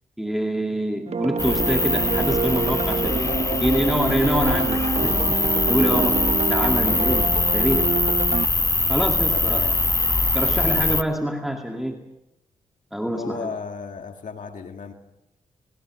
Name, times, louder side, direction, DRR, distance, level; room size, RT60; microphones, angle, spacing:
voice 1, 0.2-3.3 3.6-6.2 6.5-7.9 8.9-9.7 10.3-12.0 12.9-13.5, equal, ahead, 3 dB, 2.3 m, -25 dB
sound 1, 1.1-8.5, right 5 dB, 45° right, 0.9 m, -26 dB
sound 2, 1.4-11.0, left 2 dB, 20° left, 1.3 m, -22 dB
voice 2, 3.2-4.1 5.9-6.2 9.2-9.9 13.1-14.9, left 5 dB, 60° left, 5 dB, 1.9 m, -35 dB
25.0 x 20.0 x 6.4 m, 0.91 s
supercardioid pair, 50°, 15 cm